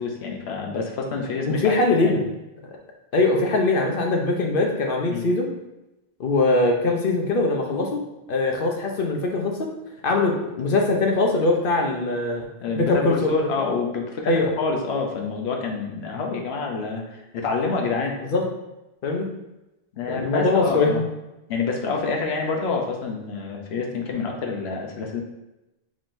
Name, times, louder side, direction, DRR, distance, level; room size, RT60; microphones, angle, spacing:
voice 1, 0.0-1.7 2.0-2.2 5.1-5.2 12.6-18.2 19.9-21.0 21.5-25.2, left 4 dB, 90° left, 1 dB, 1.0 m, -27 dB
voice 2, 1.5-2.3 3.1-5.5 6.2-9.7 10.0-12.5 12.8-13.2 14.2-14.5 18.2-18.4 19.0-19.3 20.1-21.0, left 2 dB, 60° left, 1 dB, 0.9 m, -22 dB
5.0 x 3.7 x 2.6 m, 0.96 s
omnidirectional pair, 1.0 m